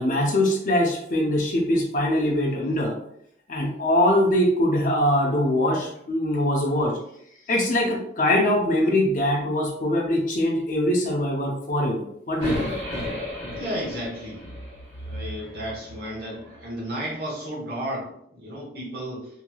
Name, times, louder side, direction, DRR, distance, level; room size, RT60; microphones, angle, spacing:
voice 1, 0.0-2.9 3.5-7.0 7.5-12.7, left 1 dB, 45° left, 0 dB, 0.5 m, -22 dB
sound 1, 12.4-16.6, left 1 dB, 80° right, 1.2 m, -34 dB
voice 2, 13.5-14.6 15.0-19.3, equal, 60° right, -5 dB, 1.0 m, -33 dB
3.0 x 2.8 x 2.2 m, 0.71 s
head